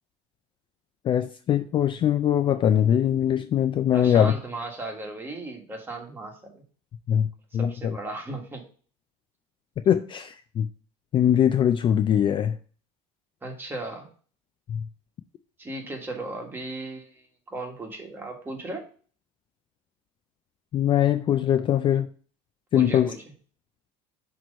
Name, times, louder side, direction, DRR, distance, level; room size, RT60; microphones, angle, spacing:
voice 1, 1.1-4.3 7.1-7.3 7.5-7.7 9.9-10.7 11.1-12.5 14.7-14.8 20.7-22.1 22.7-23.1, left 10 dB, 35° left, 10 dB, 0.4 m, -21 dB
voice 2, 3.9-6.6 7.5-8.6 13.4-14.1 15.6-18.8 22.7-23.3, right 2 dB, 15° right, 1 dB, 1.5 m, -36 dB
6.0 x 3.1 x 5.2 m, 0.42 s
cardioid pair, 125°, 15 cm